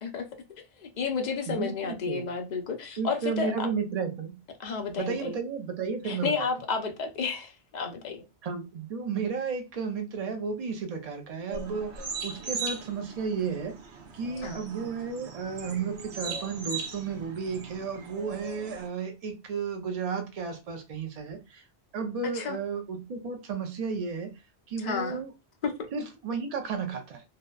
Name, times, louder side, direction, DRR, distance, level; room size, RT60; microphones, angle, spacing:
voice 1, 0.8-3.7 4.6-5.4 6.0-8.2 14.4-14.6 22.3-22.6 24.8-25.2 25.6-25.9, left 5 dB, 50° left, 0.6 m, -31 dB
voice 2, 1.5-2.3 3.0-4.4 5.0-6.5 8.4-13.7 14.1-21.6 21.9-24.3 24.7-25.3 25.9-27.2, right 5 dB, 50° right, 0.5 m, -33 dB
sound 1, 11.5-18.9, right 4 dB, 85° right, 0.9 m, -39 dB
2.7 x 2.1 x 2.2 m
omnidirectional pair, 1.1 m